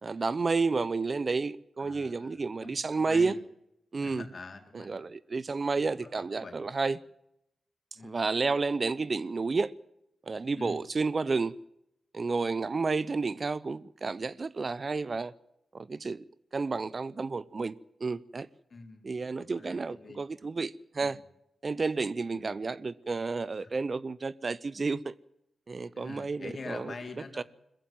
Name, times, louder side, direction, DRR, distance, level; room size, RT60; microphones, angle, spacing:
voice 1, 0.0-3.3 3.9-4.2 4.7-7.0 8.0-9.7 10.3-11.6 12.1-15.3 15.7-16.2 16.5-17.7 18.0-18.5 19.0-21.2 21.6-25.1 25.7-26.9 27.4-27.5, right 4 dB, 45° right, 0.7 m, -31 dB
voice 2, 1.8-3.4 4.0-5.1 6.0-6.6 7.9-8.2 10.6-10.8 18.7-19.1 19.4-20.2 21.0-21.3 22.3-22.6 23.6-23.7 25.9-27.4, left 3 dB, 50° left, 3.8 m, -45 dB
21.5 x 14.5 x 9.2 m
cardioid pair, 65°, 0 cm